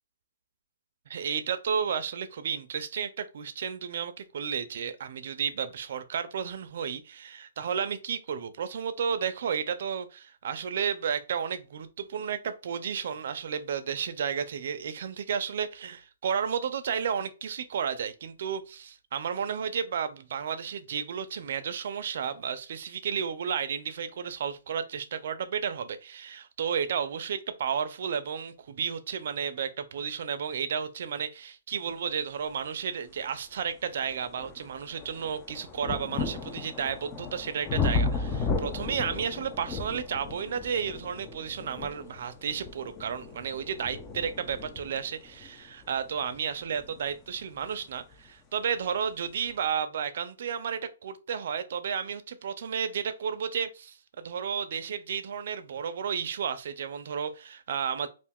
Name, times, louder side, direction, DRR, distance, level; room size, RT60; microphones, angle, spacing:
voice 1, 1.1-58.1, right 7 dB, 55° right, 0.4 m, -32 dB
sound 1, 32.9-33.0 33.6-48.3 49.2-49.3, left 4 dB, 15° left, 0.3 m, -35 dB
2.4 x 2.3 x 3.5 m
hypercardioid pair, 165°, 0 cm